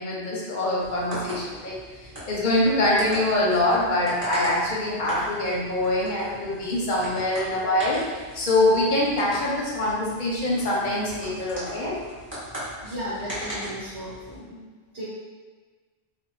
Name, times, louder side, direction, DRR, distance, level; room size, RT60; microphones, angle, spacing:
voice 1, 0.0-1.8 2.3-8.0 8.3-12.0, left 1 dB, 50° left, -4 dB, 0.7 m, -24 dB
sound 1, 0.8-14.4, equal, 10° right, 1.2 m, -38 dB
voice 2, 12.8-14.6 14.9-15.0, equal, 60° right, -12 dB, 1.4 m, -35 dB
2.6 x 2.2 x 3.9 m, 1.4 s
omnidirectional pair, 1.1 m